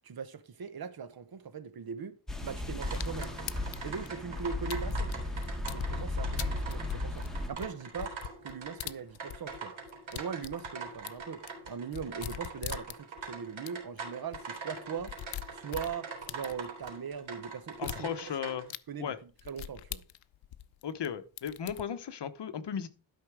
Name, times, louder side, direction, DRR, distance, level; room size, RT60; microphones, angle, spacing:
voice 1, 0.0-2.2 2.4-3.5 3.8-5.1 5.7-8.2 8.4-9.7 10.1-11.4 11.7-15.1 15.5-18.3 18.9-20.0, right 6 dB, 50° right, 1.1 m, -40 dB
sound 1, 2.3-7.5, left 2 dB, ahead, 1.9 m, -35 dB
sound 2, 2.8-18.7, right 4 dB, 85° right, 4.0 m, -44 dB
sound 3, 2.9-5.9 6.4-9.6 9.9-13.3 13.7-13.8 14.0-14.1 14.3-14.4 14.8-16.9 17.7-18.0 18.7-18.8 19.4-21.1 21.4-21.8, left 12 dB, 80° left, 0.7 m, -42 dB
voice 2, 17.8-18.7 19.0-19.2 20.8-22.9, left 8 dB, 65° left, 1.1 m, -36 dB
12.0 x 5.7 x 4.8 m
wide cardioid pair, 125°, 45 cm